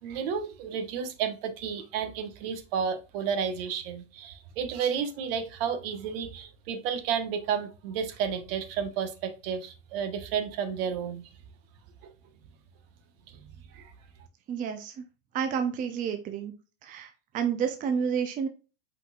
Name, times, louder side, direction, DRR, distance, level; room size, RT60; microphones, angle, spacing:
voice 1, 0.0-11.2 13.7-13.9, right 7 dB, 55° right, 1.2 m, -32 dB
voice 2, 14.5-15.0 15.3-16.5 16.8-18.5, right 7 dB, 25° right, 0.6 m, -30 dB
5.4 x 4.1 x 2.3 m
supercardioid pair, 125°, 34 cm